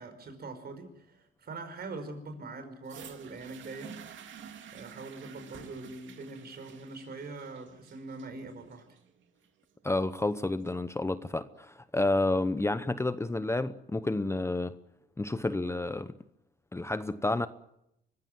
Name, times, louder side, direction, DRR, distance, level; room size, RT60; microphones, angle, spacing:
voice 1, 0.0-4.0 4.7-8.8, right 3 dB, 50° right, 5.3 m, -43 dB
sound 1, 2.8-10.8 11.7-11.8, right 8 dB, 70° right, 2.5 m, -50 dB
voice 2, 9.8-14.8 15.2-16.1 16.7-17.5, left 2 dB, 15° left, 0.8 m, -30 dB
25.0 x 15.5 x 9.3 m
cardioid pair, 90°, 20 cm